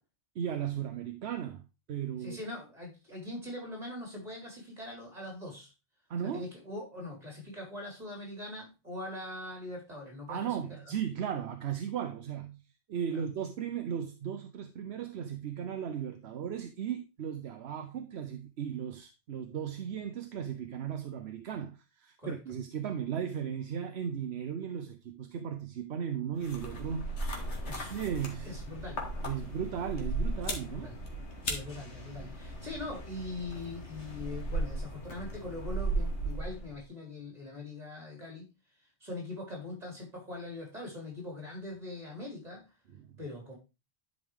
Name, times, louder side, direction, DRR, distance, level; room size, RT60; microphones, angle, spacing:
voice 1, 0.3-2.4 6.1-6.5 10.3-12.6 12.9-27.1 27.9-28.5 29.2-30.9 42.9-43.1, right 8 dB, 75° right, 1.0 m, -36 dB
voice 2, 2.2-5.7 6.2-10.8 13.1-13.2 22.2-22.3 27.6-27.9 28.4-29.0 30.6-30.9 31.4-38.5 39.0-42.6 43.2-43.5, left 2 dB, 35° right, 4.8 m, -42 dB
sound 1, 26.4-36.8, right 1 dB, 90° left, 2.1 m, -36 dB
10.5 x 5.2 x 3.5 m
omnidirectional pair, 1.1 m